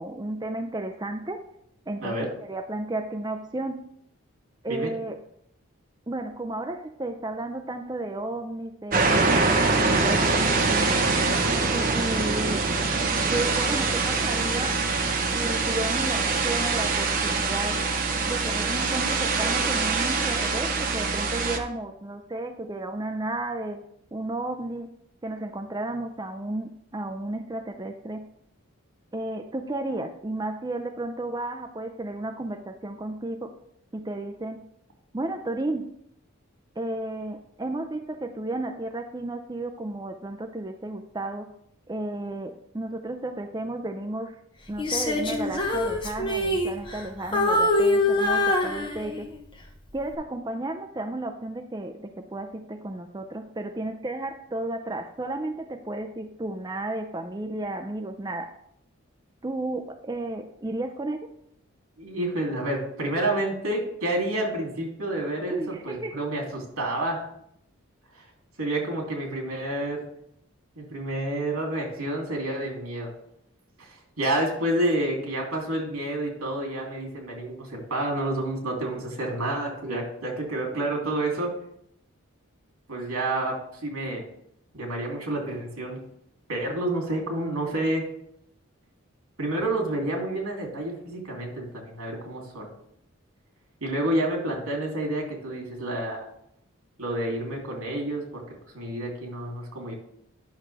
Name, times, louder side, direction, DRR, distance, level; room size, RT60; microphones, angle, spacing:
voice 1, 0.0-1.4 1.9-3.8 4.6-5.2 6.1-10.9 11.6-12.6 13.3-14.8 15.3-17.8 18.2-23.8 24.1-24.9 25.2-28.2 29.1-33.5 33.9-34.6 35.1-36.0 36.8-41.5 41.9-44.4 44.7-49.3 49.9-58.5 59.4-61.3 65.5-66.3, right 2 dB, 20° right, 5 dB, 0.4 m, -33 dB
sound 1, 8.9-21.6, right 3 dB, 40° right, 0.8 m, -24 dB
Female singing, 44.8-47.1 47.3-49.4 49.9-50.1, left 1 dB, 20° left, 1.0 m, -24 dB
voice 2, 62.0-67.2 68.1-68.3 68.6-70.0 70.8-73.1 73.8-81.5 82.9-84.3 84.7-86.0 86.5-88.1 89.4-92.7 93.8-96.3 97.0-99.9, right 1 dB, 85° right, 0 dB, 2.8 m, -29 dB
10.0 x 6.1 x 3.4 m, 0.73 s
head